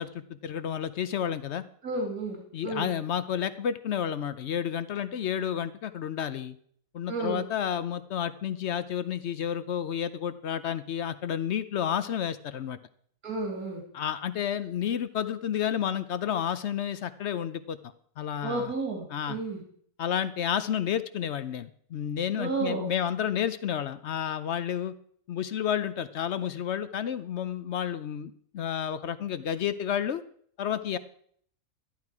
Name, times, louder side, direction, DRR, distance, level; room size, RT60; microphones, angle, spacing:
voice 1, 0.0-1.6 2.5-6.6 6.9-12.8 13.9-18.7 19.1-19.4 20.0-24.9 25.3-30.2 30.6-31.0, left 9 dB, 60° left, 13 dB, 0.8 m, -31 dB
voice 2, 1.8-2.9 7.1-7.4 13.2-13.8 18.4-19.6 22.4-22.9, right 3 dB, 80° right, 1 dB, 2.9 m, -32 dB
12.5 x 11.5 x 4.8 m, 0.62 s
omnidirectional pair, 1.6 m